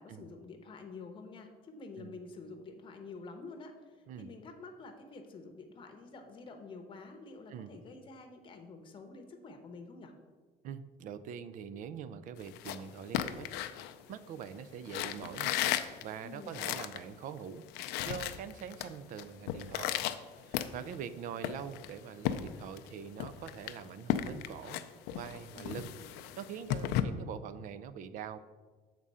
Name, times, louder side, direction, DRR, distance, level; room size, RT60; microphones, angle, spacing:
voice 1, 0.0-3.7 4.2-10.1 16.2-16.7 25.5-26.1, left 3 dB, 30° left, 4 dB, 0.8 m, -48 dB
voice 2, 10.6-13.5 13.8-15.6 16.0-20.0 20.4-24.8 25.1-25.9 26.4-28.4, right 8 dB, 50° right, 13 dB, 0.4 m, -44 dB
sound 1, 12.4-14.4 14.9-17.0 17.4-17.5 17.6-18.9 19.2-21.1 21.4-22.9 23.2-27.0, left 12 dB, 80° left, 0.4 m, -35 dB
7.4 x 3.7 x 5.5 m, 1.4 s
cardioid pair, 145°, 17 cm